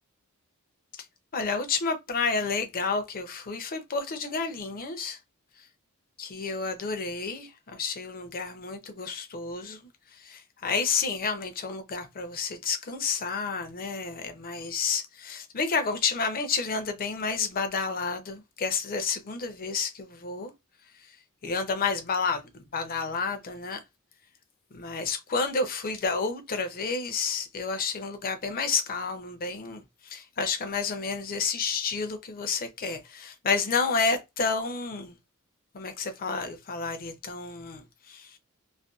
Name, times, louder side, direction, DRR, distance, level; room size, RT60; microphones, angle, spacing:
voice 1, 1.3-5.2 6.2-20.5 21.0-21.2 21.4-23.8 24.7-35.2 35.7-38.4, left 4 dB, 40° left, 0.5 m, -30 dB
2.5 x 2.2 x 2.3 m
head